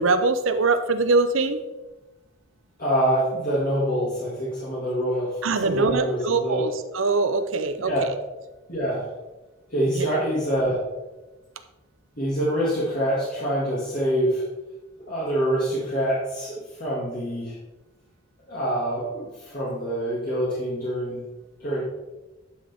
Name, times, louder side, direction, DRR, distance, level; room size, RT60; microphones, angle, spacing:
voice 1, 0.0-1.6 5.4-8.2 9.9-10.1, right 3 dB, 75° right, 9 dB, 0.7 m, -23 dB
voice 2, 2.8-6.6 7.9-8.0 8.7-9.1 9.7-10.8 12.2-14.4 15.1-17.6 18.5-21.2 21.6-21.8, equal, 45° left, -9 dB, 2.5 m, -25 dB
11.0 x 6.4 x 3.6 m, 1.1 s
head